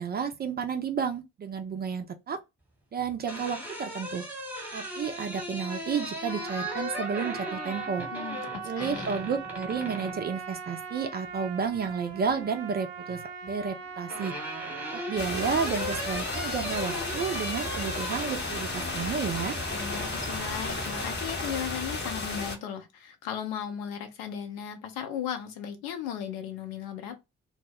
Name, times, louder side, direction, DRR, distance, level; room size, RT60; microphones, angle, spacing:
voice 1, 0.0-2.4 2.9-4.2 4.7-8.1 8.6-14.3 14.9-19.6, right 6 dB, 25° right, 0.4 m, -31 dB
sound 1, 3.0-10.2 11.7-12.4 13.6-22.1, equal, 5° right, 1.0 m, -38 dB
Trumpet, 6.3-15.8, right 6 dB, 80° right, 0.5 m, -40 dB
voice 2, 8.1-9.1 19.7-27.2, left 9 dB, 65° left, 0.7 m, -36 dB
sound 2, 15.2-22.6, left 3 dB, 30° left, 0.8 m, -34 dB
2.1 x 2.0 x 3.4 m
figure-of-eight pair, 45°, 38 cm